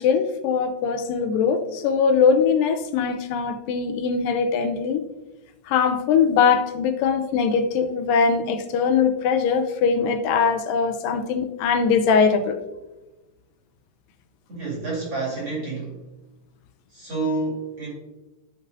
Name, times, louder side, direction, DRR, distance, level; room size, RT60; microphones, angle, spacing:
voice 1, 0.0-5.0 5.7-12.6, left 6 dB, 85° left, 8 dB, 2.3 m, -21 dB
voice 2, 14.5-16.0 16.9-17.9, right 3 dB, 40° right, -5 dB, 3.0 m, -29 dB
14.5 x 5.3 x 2.7 m, 1.1 s
omnidirectional pair, 4.0 m